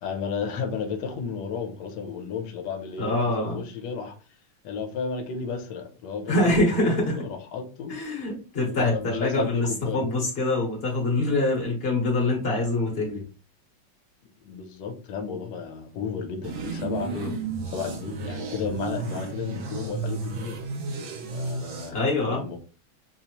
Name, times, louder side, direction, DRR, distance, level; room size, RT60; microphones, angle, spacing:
voice 1, 0.0-4.1 4.6-7.9 8.7-10.1 14.2-17.1 17.7-20.6 21.3-22.6, left 6 dB, 65° left, 5 dB, 1.2 m, -33 dB
voice 2, 3.0-3.6 6.3-7.2 7.9-13.2 17.1-17.3 21.9-22.4, left 2 dB, 40° left, -1 dB, 0.9 m, -25 dB
sound 1, 16.4-21.9, right 4 dB, 75° right, 1.5 m, -33 dB
5.5 x 2.0 x 2.9 m, 0.35 s
omnidirectional pair, 2.3 m